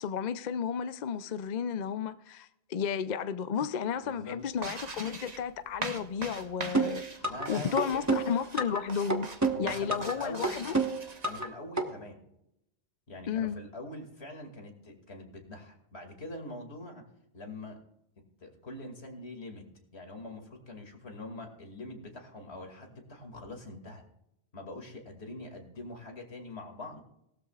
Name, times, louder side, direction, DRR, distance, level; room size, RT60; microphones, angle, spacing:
voice 1, 0.0-9.3 9.6-10.8 13.3-13.6, left 7 dB, 55° left, 0.6 m, -33 dB
voice 2, 4.0-4.4 7.2-8.0 9.5-10.7 11.2-12.2 13.1-17.0 17.3-17.8 18.4-19.7 19.9-24.0 24.5-27.0, left 2 dB, 85° left, 2.5 m, -43 dB
sound 1, 4.6-11.4, right 3 dB, 40° right, 1.2 m, -42 dB
sound 2, 6.7-7.5 7.8-8.8 9.1-10.1 10.4-11.5 11.8-11.9, right 3 dB, 15° right, 1.1 m, -28 dB
18.5 x 13.0 x 2.4 m
omnidirectional pair, 1.1 m